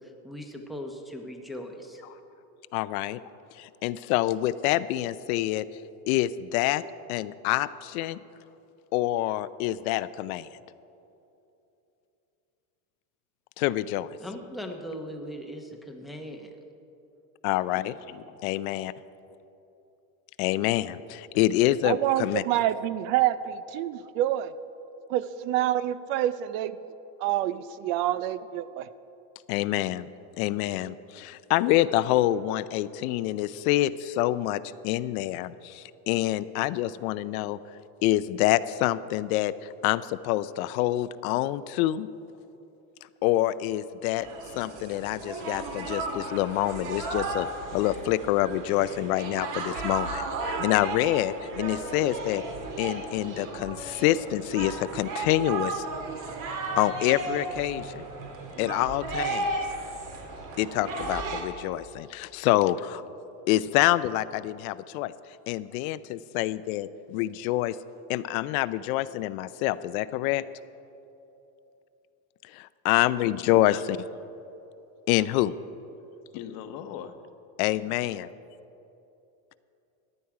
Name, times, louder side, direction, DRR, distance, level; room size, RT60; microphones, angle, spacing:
voice 1, 0.0-2.0 14.2-16.6, equal, ahead, 2 dB, 0.7 m, -39 dB
voice 2, 2.0-2.4 17.7-18.3 73.3-73.8 76.3-77.1, left 10 dB, 55° left, 9 dB, 0.9 m, -41 dB
voice 3, 2.7-3.2 3.6-5.6 6.1-6.8 7.1-8.2 8.9-10.5 13.6-14.1 17.4-17.9 18.4-18.9 20.4-22.4 29.5-30.1 30.4-37.6 38.0-42.1 43.2-44.3 44.5-47.5 47.7-52.4 52.8-55.8 56.8-58.0 58.6-59.5 60.6-63.0 63.5-65.1 65.5-67.8 68.1-70.4 72.5-74.0 75.1-75.5 77.6-78.2, left 15 dB, 85° left, 15 dB, 0.6 m, -26 dB
voice 4, 21.8-24.5 25.1-26.8 27.2-28.9, right 13 dB, 70° right, 15 dB, 0.6 m, -27 dB
sound 1, 44.2-61.4, right 3 dB, 50° right, 1.9 m, -34 dB
15.0 x 10.0 x 4.8 m, 2.9 s
cardioid pair, 155°, 42 cm